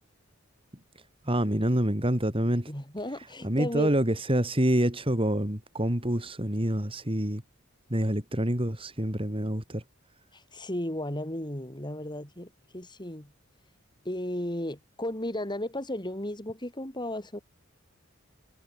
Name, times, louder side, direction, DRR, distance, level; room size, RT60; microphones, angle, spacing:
voice 1, 1.3-2.7 3.4-7.4 7.9-9.8, right 1 dB, 25° right, 3.7 m, -27 dB
voice 2, 2.7-3.9 10.3-13.3 14.0-17.4, left 1 dB, 20° left, 5.9 m, -34 dB
head